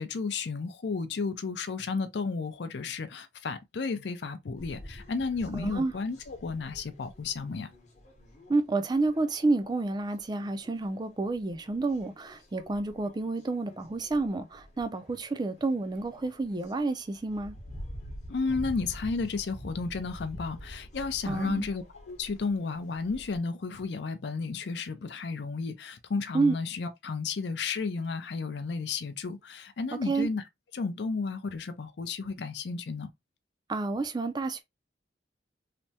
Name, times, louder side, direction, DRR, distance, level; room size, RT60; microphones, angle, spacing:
voice 1, 0.0-7.7 18.3-30.4 30.7-33.1, left 4 dB, 65° left, 0.5 m, -33 dB
sound 1, 4.6-23.4, equal, 40° left, 0.8 m, -47 dB
voice 2, 5.6-5.9 8.5-17.5 21.3-21.7 26.3-26.5 29.9-30.3 33.7-34.6, right 3 dB, 25° right, 0.3 m, -29 dB
3.3 x 2.0 x 2.7 m
head